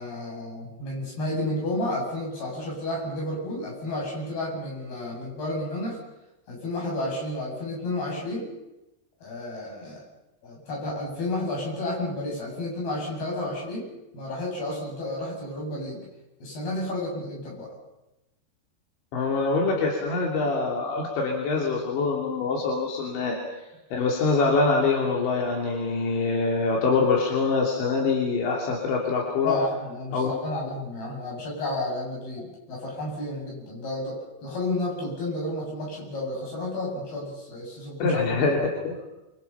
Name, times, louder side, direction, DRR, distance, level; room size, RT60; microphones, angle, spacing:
voice 1, 0.0-6.0 6.5-8.5 9.2-10.0 10.4-13.9 14.1-16.1 16.4-17.7 29.4-38.5, left 1 dB, 60° left, -2 dB, 9.6 m, -31 dB
voice 2, 19.1-23.4 23.9-29.6 30.1-30.4 38.0-39.0, left 4 dB, 85° left, -1 dB, 5.3 m, -24 dB
27.0 x 25.5 x 5.7 m, 0.97 s
omnidirectional pair, 5.0 m